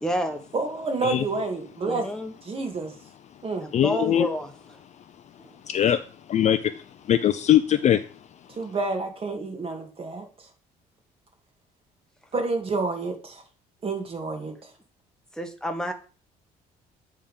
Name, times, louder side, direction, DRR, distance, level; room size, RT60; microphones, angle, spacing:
voice 1, 0.0-0.4 1.9-2.3 3.6-4.5 5.4-5.6 15.4-15.9, equal, 5° left, 1.1 m, -29 dB
voice 2, 0.5-2.1 2.4-2.9 3.4-3.7 8.5-10.3 12.3-13.4 13.8-14.7, right 3 dB, 35° right, 2.0 m, -29 dB
voice 3, 3.7-4.3 5.7-6.0 6.3-6.7 7.1-8.0, left 11 dB, 45° left, 0.4 m, -21 dB
8.6 x 3.6 x 5.3 m
cardioid pair, 110°, 17 cm